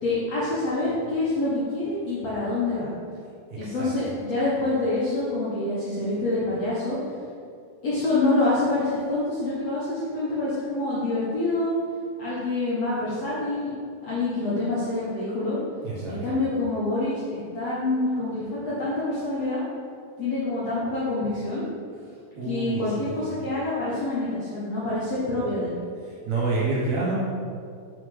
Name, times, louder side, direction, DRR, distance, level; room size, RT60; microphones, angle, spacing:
voice 1, 0.0-2.9 3.6-7.0 7.8-11.7 12.2-13.7 14.0-15.6 16.1-19.7 20.2-21.7 22.4-25.7, left 2 dB, 80° left, -9 dB, 1.4 m, -26 dB
voice 2, 3.5-3.9 15.8-16.2 22.3-23.3 26.3-27.1, right 3 dB, 85° right, -6 dB, 1.6 m, -28 dB
6.1 x 4.9 x 3.2 m, 2.3 s
omnidirectional pair, 4.5 m